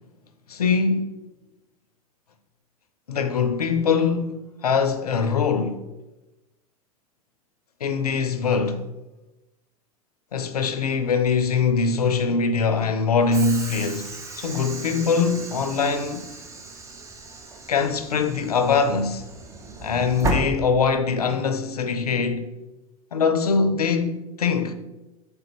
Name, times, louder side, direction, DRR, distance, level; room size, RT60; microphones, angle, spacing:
voice 1, 0.5-1.1 3.1-5.8 7.8-8.8 10.3-14.1 14.4-16.3 17.7-19.2 19.8-22.5 23.1-24.7, left 5 dB, 90° left, 0.4 m, -22 dB
Train / Sliding door, 13.3-21.3, right 1 dB, 15° right, 0.6 m, -34 dB
5.1 x 3.3 x 3.0 m
hypercardioid pair, 90°, 19 cm